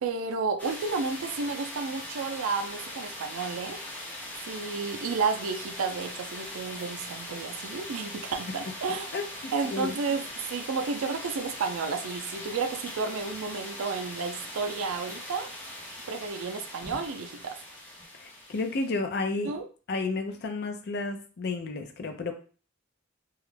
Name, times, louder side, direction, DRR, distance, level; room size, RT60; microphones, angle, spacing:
voice 1, 0.0-3.8 4.5-9.1 9.5-10.2 10.5-15.5 16.1-17.6 19.4-19.7, right 4 dB, 85° right, 6 dB, 0.4 m, -31 dB
sound 1, 0.6-19.0, left 1 dB, 10° left, 0.7 m, -41 dB
voice 2, 9.6-10.0 18.2-19.5 19.9-22.3, left 3 dB, 55° left, 6 dB, 0.4 m, -31 dB
2.3 x 2.1 x 3.1 m, 0.38 s
head